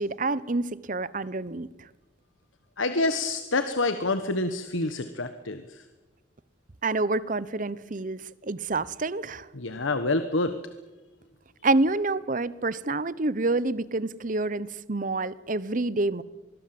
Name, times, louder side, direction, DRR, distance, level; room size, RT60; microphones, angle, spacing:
voice 1, 0.0-1.9 6.8-9.5 11.6-16.2, right 2 dB, 40° right, 0.8 m, -28 dB
voice 2, 2.8-5.8 9.6-10.5, left 2 dB, 80° left, 1.2 m, -27 dB
24.5 x 21.5 x 7.7 m
head